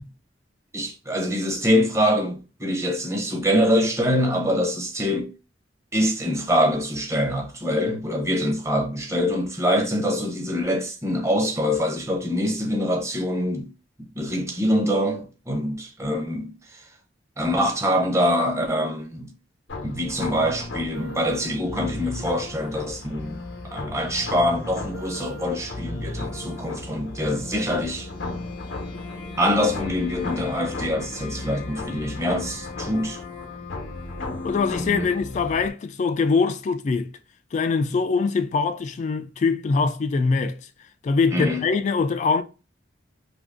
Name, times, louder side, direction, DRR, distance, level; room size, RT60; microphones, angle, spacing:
voice 1, 0.7-5.3 5.9-13.7 14.1-16.5 17.4-19.3 19.8-23.4 23.7-28.1 29.4-33.2 34.7-35.1 41.3-41.6, equal, 15° right, 0.8 m, -24 dB
sound 1, 19.7-35.7, left 2 dB, 90° left, 0.7 m, -35 dB
voice 2, 34.4-37.1 37.5-40.6 41.0-42.4, left 4 dB, 40° left, 0.3 m, -23 dB
2.8 x 2.5 x 3.5 m
head